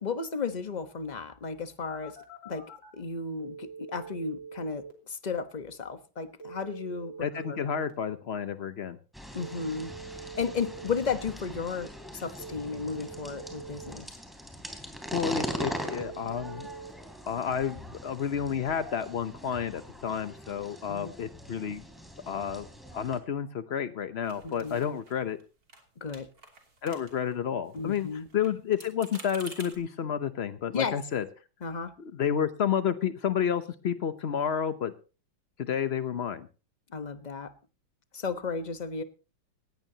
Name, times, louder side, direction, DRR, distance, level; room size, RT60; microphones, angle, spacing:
voice 1, 0.0-2.2 2.4-2.6 2.9-7.6 9.3-9.9 10.3-14.1 20.9-21.1 24.4-24.8 26.0-26.3 27.7-28.3 30.7-31.0 31.6-31.9 36.9-37.5 38.1-39.0, left 5 dB, 30° left, 9 dB, 0.9 m, -34 dB
Telephone, 1.9-2.9 3.4-4.9 6.4-7.9 9.4-10.9 12.4-13.9 15.4-16.9, right 5 dB, 70° left, 3.8 m, -44 dB
voice 2, 7.2-9.0 15.1-16.7 17.3-21.8 22.3-22.7 22.9-25.4 26.8-28.1 28.3-31.2 32.1-34.9 35.6-36.5, left 8 dB, 85° left, 11 dB, 0.5 m, -30 dB
sound 1, 9.1-23.2, equal, ahead, 3.0 m, -41 dB
sound 2, 24.2-25.4 25.7-25.8 26.1-27.4 27.7-29.8, right 3 dB, 45° right, 3.6 m, -49 dB
18.0 x 16.5 x 2.9 m, 0.34 s
omnidirectional pair, 2.2 m